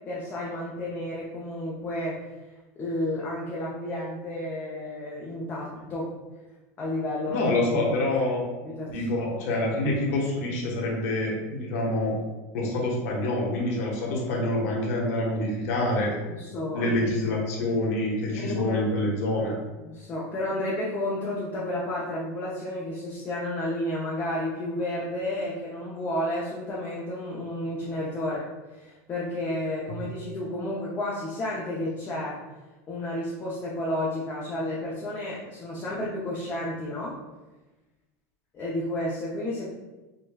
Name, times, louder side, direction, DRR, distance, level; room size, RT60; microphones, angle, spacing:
voice 1, 0.1-2.2 2.8-6.1 6.8-7.4 8.6-8.9 16.3-16.9 17.2-17.4 18.4-18.8 19.8-28.4 28.7-32.4 32.9-37.2 38.5-39.7, left 1 dB, 20° left, -6 dB, 0.5 m, -31 dB
voice 2, 7.3-8.4 8.9-12.1 12.5-16.2 16.7-19.5 29.9-30.0, left 1 dB, 70° left, -2 dB, 1.0 m, -26 dB
5.2 x 2.1 x 2.3 m, 1.1 s
supercardioid pair, 150°, 9 cm